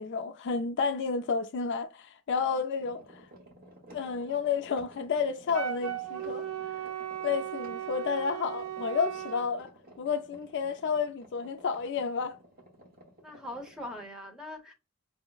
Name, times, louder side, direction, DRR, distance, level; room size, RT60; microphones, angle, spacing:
voice 1, 0.0-3.2 3.9-6.5 7.2-9.7 10.0-12.4, left 5 dB, 50° left, 0.3 m, -31 dB
sound 1, 2.8-14.1, right 1 dB, 45° right, 0.9 m, -54 dB
Wind instrument woodwind instrument, 5.5-9.5, right 10 dB, 80° right, 0.6 m, -36 dB
voice 2, 13.2-14.7, left 1 dB, 5° right, 0.8 m, -41 dB
5.4 x 2.0 x 2.2 m
head